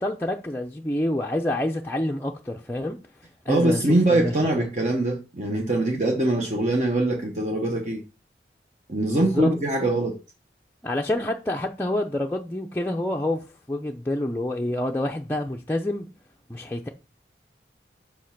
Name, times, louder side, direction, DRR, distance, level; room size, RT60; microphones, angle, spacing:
voice 1, 0.0-3.0 3.5-3.8 4.1-4.7 9.1-9.5 10.8-16.1 16.5-16.9, left 1 dB, 10° left, 0.5 m, -27 dB
voice 2, 3.5-8.0 8.9-10.2, right 1 dB, 40° right, 1.0 m, -23 dB
5.9 x 5.3 x 5.8 m
head